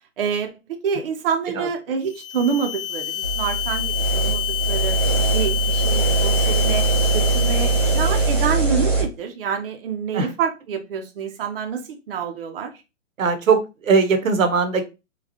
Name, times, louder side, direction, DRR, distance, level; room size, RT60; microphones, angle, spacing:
voice 1, 0.2-5.0 5.3-6.9 7.1-12.7, right 6 dB, 45° right, 4 dB, 0.6 m, -27 dB
sound 1, 2.0-8.6, left 11 dB, 45° left, 0.9 m, -28 dB
sound 2, 3.2-9.0, right 3 dB, 10° right, 1.1 m, -21 dB
voice 2, 13.2-14.8, right 5 dB, 90° right, 8 dB, 0.9 m, -19 dB
4.1 x 2.3 x 2.8 m, 0.27 s
hypercardioid pair, 155°, 39 cm